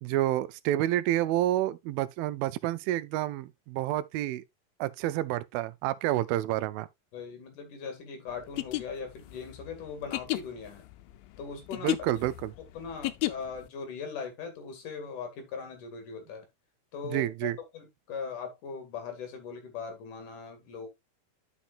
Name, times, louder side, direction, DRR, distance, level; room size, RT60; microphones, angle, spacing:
voice 1, 0.0-4.4 4.8-6.9 11.8-12.5 17.1-17.6, right 14 dB, 90° right, 2.4 m, -29 dB
voice 2, 7.1-10.9 11.4-11.9 12.8-16.4 16.9-17.3 17.7-20.9, left 5 dB, 65° left, 3.4 m, -40 dB
sound 1, 8.4-13.7, left 18 dB, 85° left, 2.4 m, -33 dB
11.5 x 5.8 x 2.4 m
omnidirectional pair, 4.1 m